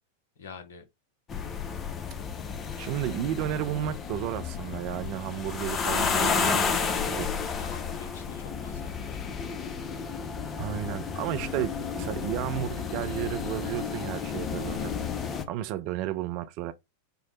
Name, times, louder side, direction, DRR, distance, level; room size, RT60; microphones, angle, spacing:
voice 1, 0.4-0.9 7.6-9.2, left 5 dB, 60° left, 0.8 m, -47 dB
sound 1, 1.3-15.4, left 6 dB, 25° left, 0.4 m, -32 dB
voice 2, 2.8-7.3 10.6-14.9 15.5-16.7, right 12 dB, 45° right, 0.4 m, -32 dB
4.5 x 2.0 x 3.0 m
figure-of-eight pair, 90°, 0 cm